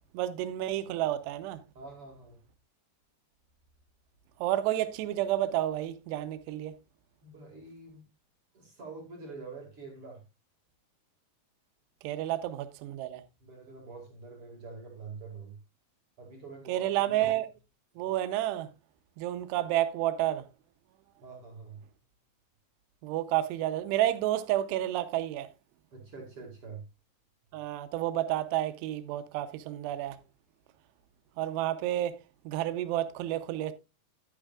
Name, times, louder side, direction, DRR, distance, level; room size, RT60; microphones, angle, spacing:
voice 1, 0.1-1.6 4.4-6.7 12.0-13.2 16.7-17.5 18.0-18.7 19.2-20.4 23.0-25.5 27.5-30.2 31.4-32.2 32.5-33.7, right 13 dB, 80° right, 2.8 m, -30 dB
voice 2, 1.7-2.4 7.2-8.0 8.5-10.2 13.4-15.6 16.2-17.2 21.2-21.8 25.9-26.8, right 4 dB, 45° right, 2.1 m, -46 dB
11.0 x 9.9 x 2.4 m
omnidirectional pair, 5.1 m